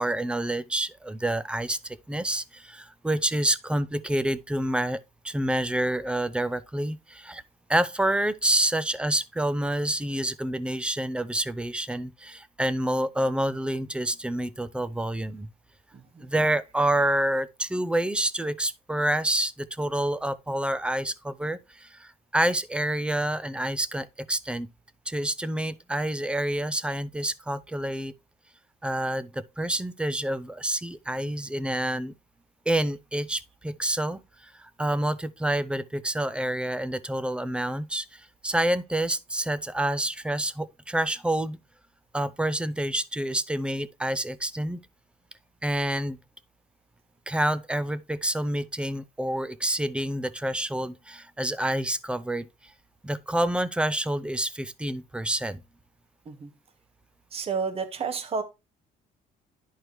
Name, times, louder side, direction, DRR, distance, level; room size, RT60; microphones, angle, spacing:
voice 1, 0.0-5.0 5.2-7.4 7.7-15.5 16.2-24.7 25.1-28.1 28.8-32.1 32.7-41.6 42.1-44.8 45.6-46.2 47.3-52.5 53.0-55.6, right 1 dB, 5° right, 0.5 m, -28 dB
voice 2, 57.3-58.4, right 5 dB, 35° right, 1.2 m, -30 dB
11.0 x 4.6 x 3.1 m
cardioid pair, 110°, 17 cm